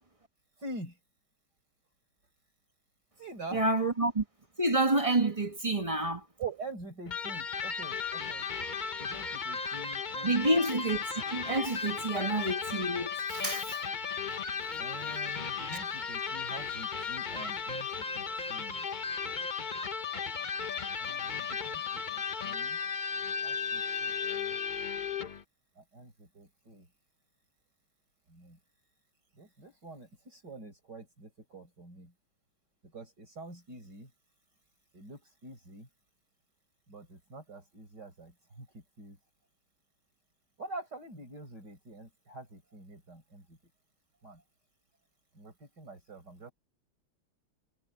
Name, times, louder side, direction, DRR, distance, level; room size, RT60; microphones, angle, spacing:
voice 1, 0.6-0.9 3.2-3.9 6.4-8.4 9.0-10.6 14.8-18.9 21.0-21.8 22.1-22.8 23.4-24.6 25.8-26.9 28.3-28.6 29.4-32.1 32.9-34.1 34.9-35.9 36.9-39.2 40.6-43.6 44.2-44.4 45.4-46.5, right 3 dB, 55° right, 5.9 m, -46 dB
voice 2, 3.5-4.2 4.6-6.2 10.2-13.8, right 2 dB, 20° right, 1.3 m, -29 dB
Electric guitar, 7.1-25.4, left 6 dB, 50° left, 0.5 m, -35 dB
omnidirectional pair, 2.2 m